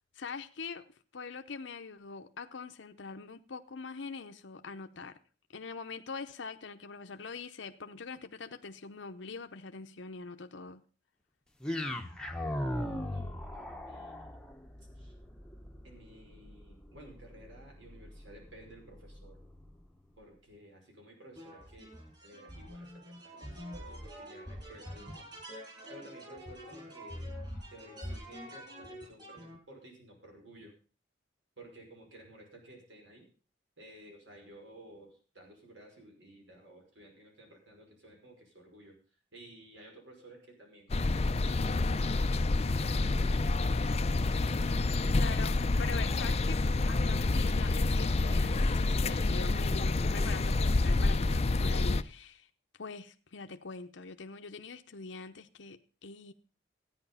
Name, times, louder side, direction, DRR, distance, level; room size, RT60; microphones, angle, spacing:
voice 1, 0.1-5.1 5.5-10.8 45.1-46.6 46.9-52.5 52.8-56.3, left 4 dB, 75° left, 7 dB, 0.8 m, -43 dB
sound 1, 11.6-19.8, left 1 dB, 5° left, 1.0 m, -40 dB
voice 2, 12.6-14.3 14.9-15.1 15.8-19.4 20.2-21.9 22.2-22.9 23.2-25.3 25.9-27.3 27.7-30.7 31.6-33.3 33.8-39.0 39.3-44.6, right 1 dB, 75° right, 1 dB, 5.6 m, -54 dB
sound 2, 21.4-29.6, equal, 25° right, 8.0 m, -45 dB
sound 3, 40.9-52.0, left 2 dB, 35° left, 0.5 m, -28 dB
14.0 x 9.8 x 5.6 m, 0.38 s
head